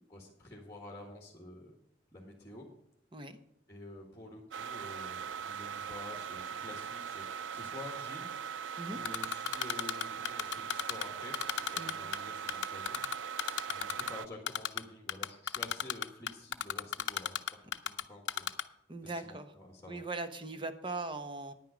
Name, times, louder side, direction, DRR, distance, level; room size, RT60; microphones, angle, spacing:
voice 1, 0.1-1.7 2.1-2.6 3.7-8.3 8.9-13.0 13.7-17.4 17.8-18.5 19.0-20.0, left 1 dB, 15° left, 0 dB, 1.6 m, -49 dB
sound 1, 4.5-14.3, right 7 dB, 80° right, 0.4 m, -40 dB
Typing, 9.0-11.0 11.3-12.2 12.5-14.1 14.5-14.8 15.1-18.0 18.3-18.6, left 9 dB, 75° left, 0.6 m, -32 dB
voice 2, 18.9-19.5 19.9-21.5, right 3 dB, 25° right, 9 dB, 0.9 m, -40 dB
10.0 x 9.2 x 5.0 m, 0.79 s
head